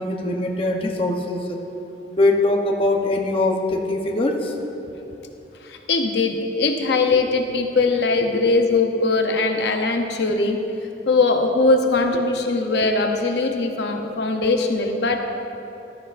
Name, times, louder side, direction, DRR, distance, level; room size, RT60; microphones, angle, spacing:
voice 1, 0.0-1.6 2.1-4.5, left 2 dB, 30° left, 1 dB, 0.8 m, -22 dB
voice 2, 5.6-10.6 11.1-15.2, left 3 dB, 75° left, 4 dB, 0.7 m, -20 dB
15.0 x 12.5 x 2.5 m, 2.9 s
head